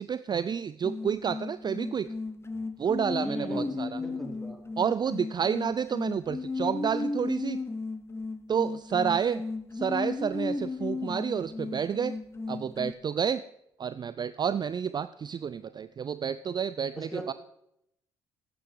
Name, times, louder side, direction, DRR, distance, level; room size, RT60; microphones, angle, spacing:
voice 1, 0.0-2.1 2.8-4.0 4.8-7.6 8.5-9.4 9.7-12.2 12.5-13.4 13.8-17.3, right 7 dB, 35° right, 15 dB, 0.4 m, -30 dB
sound 1, 0.8-12.9, left 3 dB, 20° left, 0.9 m, -35 dB
voice 2, 3.2-4.6 17.0-17.3, right 1 dB, ahead, 3 dB, 2.9 m, -39 dB
12.0 x 9.0 x 5.0 m, 0.79 s
hypercardioid pair, 55°, 13 cm